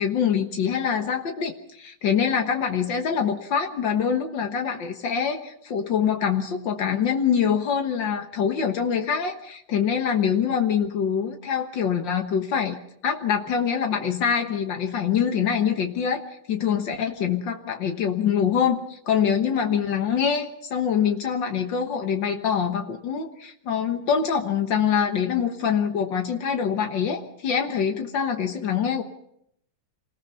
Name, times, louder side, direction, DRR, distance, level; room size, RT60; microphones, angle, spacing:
voice 1, 0.0-12.8 13.0-16.2 16.5-29.0, left 7 dB, 75° left, 4 dB, 1.0 m, -24 dB
28.0 x 20.0 x 5.6 m, 0.73 s
omnidirectional pair, 4.2 m